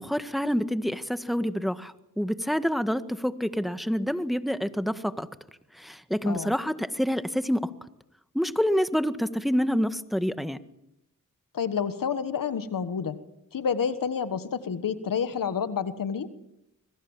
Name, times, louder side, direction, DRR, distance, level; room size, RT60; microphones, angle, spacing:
voice 1, 0.0-5.3 5.7-7.7 8.3-10.6, equal, ahead, 11 dB, 1.7 m, -27 dB
voice 2, 11.5-13.2 13.5-16.3, left 7 dB, 85° left, 12 dB, 1.5 m, -29 dB
25.5 x 22.5 x 7.3 m, 0.84 s
cardioid pair, 50°, 32 cm